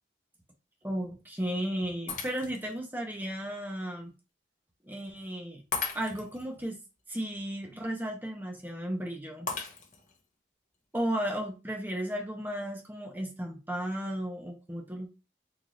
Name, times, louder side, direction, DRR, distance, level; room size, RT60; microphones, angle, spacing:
voice 1, 0.8-4.1 4.8-5.6 5.9-6.8 7.1-9.5 10.9-15.1, equal, 10° right, 1 dB, 0.8 m, -34 dB
Shatter, 2.1-2.8 3.4-3.5 5.7-6.4 9.5-10.2, left 4 dB, 45° left, 0.8 m, -36 dB
3.9 x 2.7 x 3.1 m, 0.29 s
head